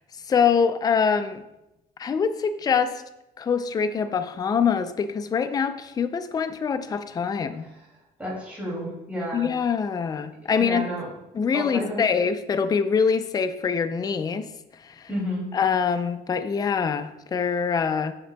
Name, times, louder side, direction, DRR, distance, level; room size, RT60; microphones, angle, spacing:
voice 1, 0.3-1.4 2.0-3.0 3.4-7.6 9.3-10.8 11.3-14.5 14.8-15.1 15.5-18.1, left 6 dB, 25° left, 10 dB, 0.4 m, -24 dB
voice 2, 8.2-9.5 10.5-11.1 11.5-12.0 15.1-15.5, equal, 10° right, -6 dB, 2.5 m, -31 dB
7.7 x 6.7 x 2.2 m, 0.92 s
cardioid pair, 110°, 17 cm